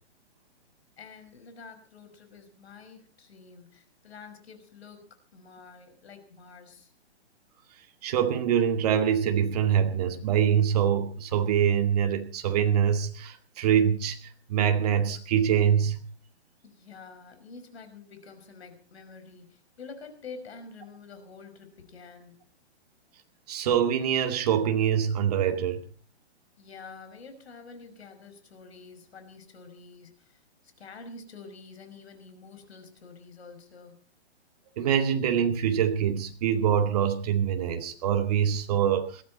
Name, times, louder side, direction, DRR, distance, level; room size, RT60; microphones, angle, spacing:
voice 1, 1.0-6.9 16.6-22.4 26.6-30.4 30.8-34.0, left 4 dB, 65° left, 5.6 m, -48 dB
voice 2, 8.0-14.2 14.5-16.0 23.5-25.8 34.8-39.2, right 8 dB, 35° right, 2.1 m, -24 dB
21.5 x 15.5 x 4.2 m
hypercardioid pair, 165°, 34 cm